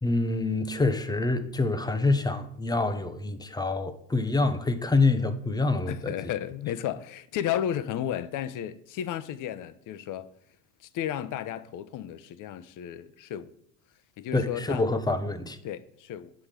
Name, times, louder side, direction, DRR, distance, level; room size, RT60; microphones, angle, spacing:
voice 1, 0.0-6.1 14.3-15.6, left 3 dB, 10° left, 0.6 m, -26 dB
voice 2, 5.9-10.3 10.8-13.5 14.2-14.9 15.6-16.3, left 10 dB, 40° left, 0.8 m, -33 dB
8.3 x 5.0 x 7.3 m
supercardioid pair, 115°, 49 cm